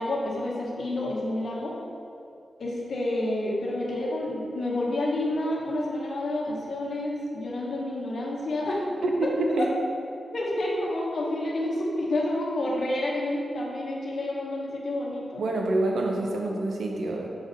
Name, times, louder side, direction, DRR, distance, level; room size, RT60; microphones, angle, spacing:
voice 1, 0.0-1.8 2.6-9.0 9.5-9.7 10.3-15.4, left 1 dB, 65° left, -3 dB, 1.1 m, -29 dB
voice 2, 9.0-9.7 15.4-17.3, right 2 dB, 85° right, 1 dB, 0.8 m, -26 dB
6.9 x 3.8 x 4.0 m, 2.4 s
cardioid pair, 70°, 0 cm